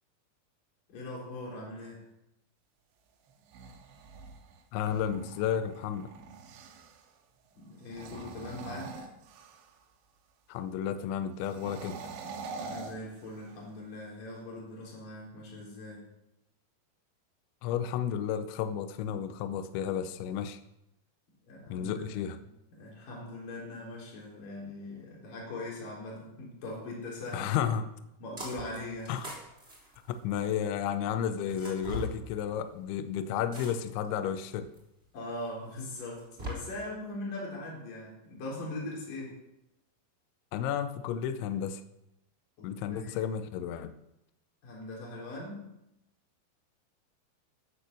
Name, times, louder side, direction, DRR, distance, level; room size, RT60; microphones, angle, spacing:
voice 1, 0.9-2.1 7.6-9.1 12.6-16.1 21.4-22.4 22.7-27.7 28.2-29.1 35.1-39.4 42.6-43.3 44.6-45.7, left 2 dB, 45° left, -3 dB, 5.6 m, -41 dB
sound 1, 3.3-7.0 7.8-9.8 11.4-13.7, right 4 dB, 75° right, 3.5 m, -45 dB
voice 2, 4.7-6.1 10.5-12.0 17.6-20.6 21.7-22.4 27.3-27.9 29.1-29.3 30.1-34.7 40.5-41.8 42.6-43.9, left 9 dB, 80° left, 10 dB, 3.1 m, -32 dB
sound 2, 28.4-28.8 29.0-30.6 31.4-32.1 33.5-34.1 34.7-34.8 36.0-36.5, equal, 15° right, 3.4 m, -40 dB
13.0 x 10.0 x 6.8 m, 0.85 s
omnidirectional pair, 5.4 m